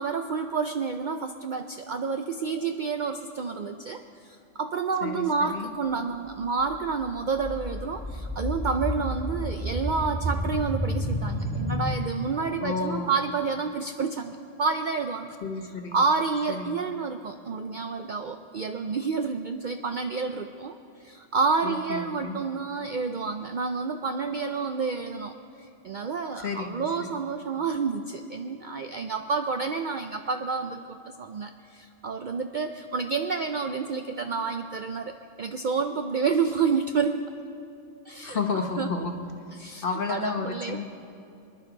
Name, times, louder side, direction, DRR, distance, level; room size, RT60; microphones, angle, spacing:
voice 1, 0.0-15.4 15.9-37.3 38.1-38.4 38.8-38.9 39.6-40.8, right 5 dB, 60° right, 7 dB, 0.5 m, -29 dB
voice 2, 5.0-5.7 12.6-13.2 15.4-16.0 16.5-16.8 21.6-22.4 26.4-27.2 38.2-39.1 39.8-40.9, left 5 dB, 50° left, 4 dB, 1.1 m, -32 dB
sound 1, 6.6-12.0, equal, 10° left, 0.8 m, -30 dB
24.5 x 10.5 x 3.9 m, 2.7 s
omnidirectional pair, 1.3 m